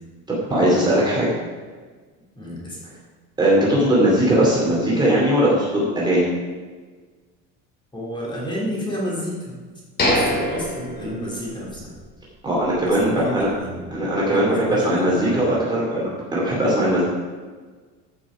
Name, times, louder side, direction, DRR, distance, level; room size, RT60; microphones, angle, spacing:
voice 1, 0.4-1.3 3.4-6.3 12.4-13.5 13.9-17.0, right 1 dB, 15° right, -6 dB, 2.7 m, -19 dB
voice 2, 2.4-2.8 7.9-9.6 10.0-11.9 12.9-13.8 14.3-15.4, equal, 15° left, -5 dB, 3.6 m, -30 dB
sound 1, 10.0-11.9 12.2-12.3 12.9-13.0, left 1 dB, 30° left, 2.9 m, -24 dB
14.5 x 6.1 x 5.0 m, 1.4 s
cardioid pair, 140°, 32 cm